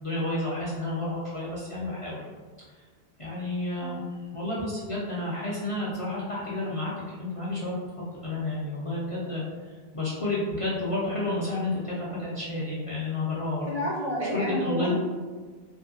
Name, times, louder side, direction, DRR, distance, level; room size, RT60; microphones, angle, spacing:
voice 1, 0.0-2.2 3.2-4.0 4.3-7.8 8.2-9.4 9.9-13.7 14.3-14.9, left 2 dB, 45° left, -7 dB, 0.4 m, -30 dB
voice 2, 13.7-14.9, equal, 50° right, -5 dB, 0.5 m, -29 dB
2.7 x 2.5 x 2.6 m, 1.5 s
omnidirectional pair, 1.1 m